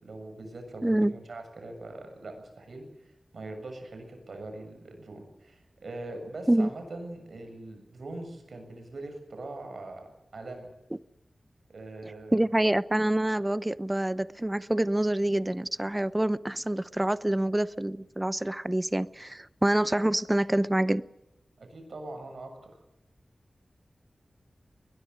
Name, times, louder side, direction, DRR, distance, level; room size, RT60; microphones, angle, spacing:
voice 1, 0.0-10.7 11.7-12.4 21.6-22.7, right 2 dB, 80° right, 7.3 m, -42 dB
voice 2, 0.8-1.1 6.5-6.7 12.3-21.0, right 1 dB, 15° right, 0.8 m, -26 dB
21.0 x 21.0 x 8.1 m
wide cardioid pair, 90°, 0 cm